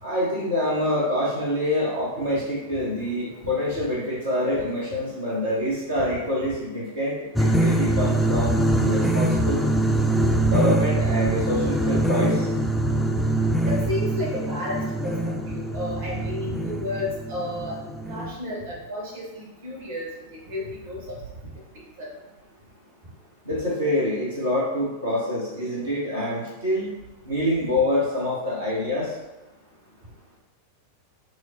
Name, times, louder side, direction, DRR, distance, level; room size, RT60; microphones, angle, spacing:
voice 1, 0.0-9.6 10.5-12.5 23.4-26.9 27.2-29.1, left 1 dB, 75° right, -7 dB, 0.9 m, -26 dB
sound 1, 7.3-18.3, right 1 dB, 5° left, 0.3 m, -23 dB
voice 2, 13.7-15.2 15.5-17.8 18.1-20.1 20.5-21.0 22.0-22.1, left 2 dB, 55° right, -2 dB, 1.1 m, -32 dB
6.1 x 2.0 x 2.6 m, 0.99 s
figure-of-eight pair, 90°, 0 cm